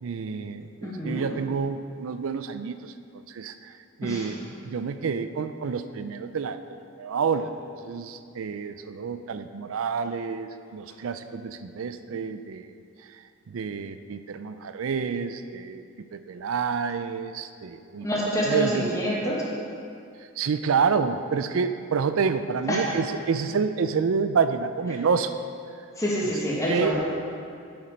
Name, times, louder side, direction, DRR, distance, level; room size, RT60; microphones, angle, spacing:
voice 1, 0.0-2.9 3.3-4.4 4.6-6.6 7.0-7.5 7.8-12.7 13.5-15.8 16.1-18.1 18.4-18.9 20.4-25.3 26.7-26.9, right 5 dB, 75° right, 10 dB, 0.4 m, -28 dB
voice 2, 0.8-1.2 4.0-4.3 18.0-19.4 22.7-22.9 26.0-27.0, equal, 15° left, -5 dB, 1.3 m, -27 dB
7.6 x 7.0 x 5.1 m, 2.4 s
head